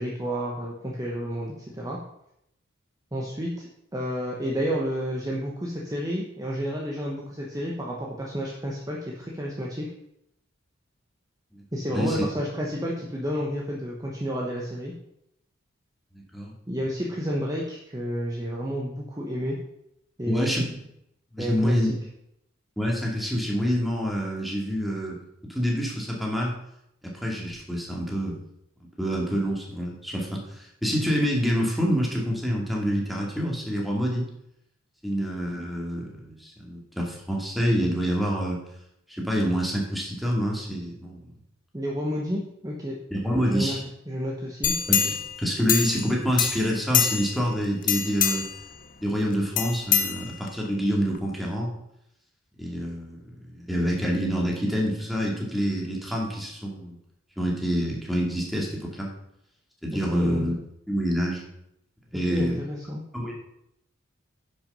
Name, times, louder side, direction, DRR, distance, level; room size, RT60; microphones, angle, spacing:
voice 1, 0.0-2.0 3.1-9.9 11.7-14.9 16.7-19.6 20.2-20.5 21.4-21.9 41.7-43.0 43.4-43.8 44.1-44.7 60.1-60.5 62.1-63.0, equal, 20° right, -3 dB, 1.2 m, -31 dB
voice 2, 20.3-20.6 21.3-21.9 22.8-25.2 25.5-26.5 27.0-28.4 29.0-34.2 35.0-38.6 39.2-41.3 43.1-43.9 44.9-48.5 49.0-51.7 52.6-57.0 57.4-59.1 59.8-60.5 60.9-61.4 62.1-62.6 63.1-63.3, equal, ahead, -2 dB, 2.3 m, -27 dB
sound 1, 44.6-46.1 46.4-47.4 47.8-48.6 49.6-50.7 51.1-51.2, left 9 dB, 40° left, 0.8 m, -25 dB
10.5 x 6.2 x 5.5 m, 0.78 s
head